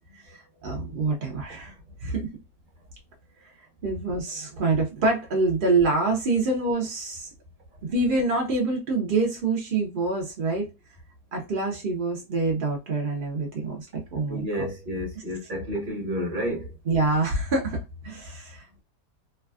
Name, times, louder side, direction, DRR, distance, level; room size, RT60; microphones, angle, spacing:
voice 1, 0.2-1.7 2.0-2.3 3.8-7.3 7.8-10.7 11.3-14.4 16.9-18.8, right 3 dB, 60° right, 0.5 m, -26 dB
voice 2, 14.3-16.7, equal, 35° right, 1.0 m, -30 dB
3.2 x 2.3 x 2.3 m
omnidirectional pair, 1.8 m